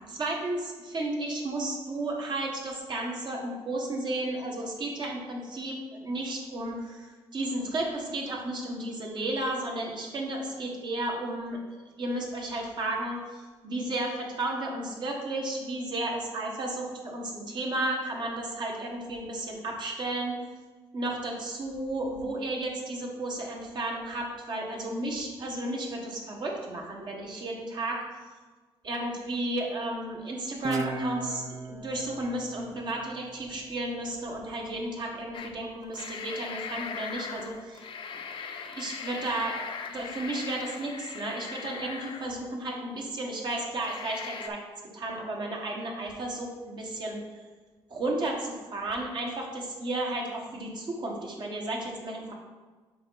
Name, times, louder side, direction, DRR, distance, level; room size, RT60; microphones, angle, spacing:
voice 1, 0.1-11.6 12.0-20.4 20.9-28.0 28.8-37.9 38.1-38.2 38.6-39.6 39.9-44.6 44.9-47.2 47.9-52.3, right 2 dB, 45° right, -1 dB, 1.4 m, -33 dB
Guitar, 30.6-33.9, right 3 dB, 30° right, 0.6 m, -36 dB
sound 1, 35.3-35.5 35.8-42.7 43.2-43.3 43.8-44.5, left 6 dB, 60° left, 0.6 m, -39 dB
6.6 x 4.7 x 4.0 m, 1.3 s
cardioid pair, 100°, 10 cm